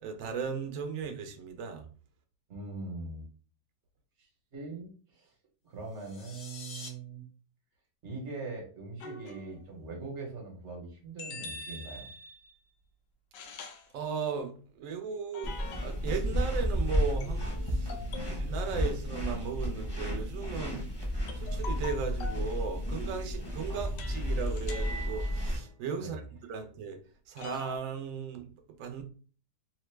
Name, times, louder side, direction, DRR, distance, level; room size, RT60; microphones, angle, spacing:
voice 1, 0.0-1.9 13.9-17.9 18.3-20.8 21.3-27.0 27.3-29.0, right 6 dB, 65° right, 0.8 m, -37 dB
voice 2, 2.5-3.3 4.5-5.3 5.6-7.3 8.0-12.1 18.2-18.3 23.7-23.9 26.0-26.2, right 3 dB, 50° right, 1.1 m, -42 dB
sound 1, 5.8-6.9, left 4 dB, 65° left, 0.7 m, -46 dB
sound 2, 9.0-9.7 11.2-12.5 13.3-13.9 15.3-16.2 17.2-18.5 21.3-22.5 24.0-25.7 27.4-27.8, left 2 dB, 85° left, 1.2 m, -44 dB
sound 3, 15.4-25.6, equal, 20° left, 0.7 m, -32 dB
3.1 x 2.0 x 3.1 m
omnidirectional pair, 1.8 m